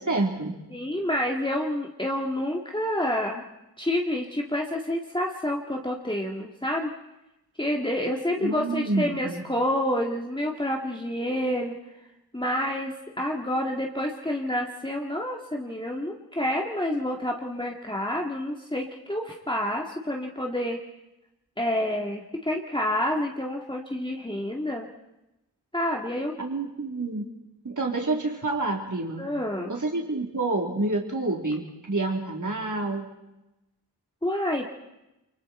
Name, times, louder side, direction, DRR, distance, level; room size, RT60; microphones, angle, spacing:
voice 1, 0.0-0.6 8.4-9.4 26.4-27.3 27.6-29.3 29.7-33.1, right 2 dB, 50° right, 0 dB, 3.5 m, -28 dB
voice 2, 0.7-3.5 3.8-6.9 7.6-11.7 12.3-20.8 21.6-24.9 25.7-26.3 29.2-29.7 34.2-34.7, left 1 dB, 10° left, -1 dB, 2.1 m, -28 dB
29.5 x 24.0 x 4.4 m, 0.95 s
wide cardioid pair, 55°, 39 cm